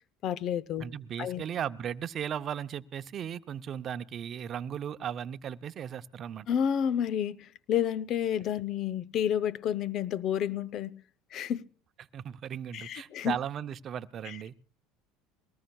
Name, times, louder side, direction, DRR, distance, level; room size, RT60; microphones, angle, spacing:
voice 1, 0.2-0.9 1.2-1.4 6.5-10.9 11.3-11.7 12.7-13.4 14.3-14.4, left 9 dB, 50° left, 0.7 m, -30 dB
voice 2, 0.8-6.5 12.0-14.7, right 9 dB, 45° right, 0.7 m, -36 dB
22.0 x 19.0 x 2.3 m
hypercardioid pair, 85°, 0 cm